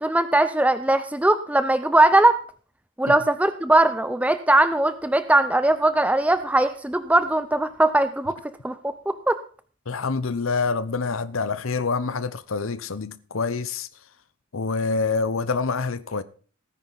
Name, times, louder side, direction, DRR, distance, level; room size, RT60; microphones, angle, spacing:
voice 1, 0.0-2.4 3.0-8.3 8.6-9.4, right 2 dB, 5° right, 0.6 m, -20 dB
voice 2, 9.9-13.9 14.5-16.2, left 4 dB, 90° left, 0.9 m, -26 dB
18.5 x 9.9 x 4.1 m
head